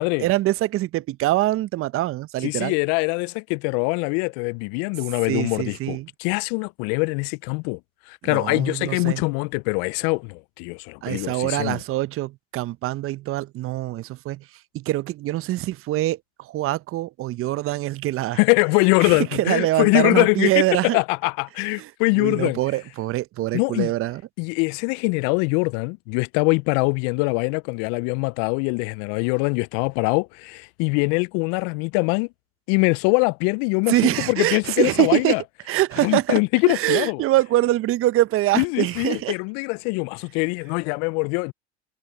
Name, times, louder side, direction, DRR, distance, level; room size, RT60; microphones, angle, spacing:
voice 1, 0.0-2.8 5.3-6.1 8.2-9.2 11.0-14.5 14.7-18.4 19.0-21.0 21.8-21.9 22.1-24.2 33.9-35.4 35.7-36.4 36.7-39.4, right 16 dB, 40° right, 0.8 m, -24 dB
voice 2, 2.4-7.8 8.1-11.8 18.4-22.6 23.5-23.9 24.4-32.3 32.7-35.4 36.0-37.2 38.5-41.5, left 33 dB, 55° left, 0.6 m, -23 dB
hypercardioid pair, 85°, 34 cm